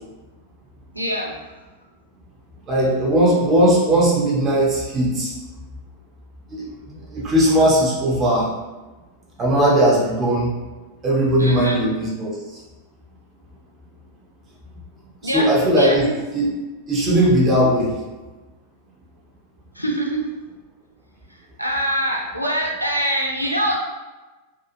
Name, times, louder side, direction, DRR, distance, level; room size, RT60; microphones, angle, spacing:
voice 1, 0.9-1.4 11.4-11.8 15.2-15.4 15.8-16.1 19.8-20.2 21.6-23.8, right 1 dB, 90° right, -1 dB, 0.4 m, -23 dB
voice 2, 2.7-5.3 6.5-6.7 7.1-8.5 9.4-10.5 11.0-12.4 15.2-16.0 16.3-16.5 16.9-17.9, right 1 dB, 25° right, -4 dB, 0.6 m, -18 dB
2.6 x 2.4 x 2.5 m, 1.2 s
figure-of-eight pair, 90°, 0 cm